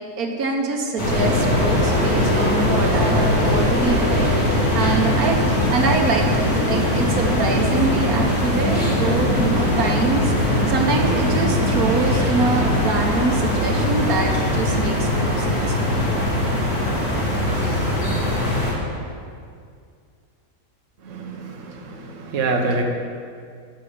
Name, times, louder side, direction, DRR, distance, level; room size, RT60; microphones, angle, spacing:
voice 1, 0.2-16.1, right 3 dB, 75° right, 1 dB, 1.6 m, -24 dB
sound 1, 1.0-18.7, left 1 dB, 85° left, 3.4 m, -20 dB
voice 2, 21.0-22.8, right 3 dB, 60° right, 1 dB, 1.4 m, -26 dB
9.7 x 6.4 x 8.7 m, 2.2 s
omnidirectional pair, 1.5 m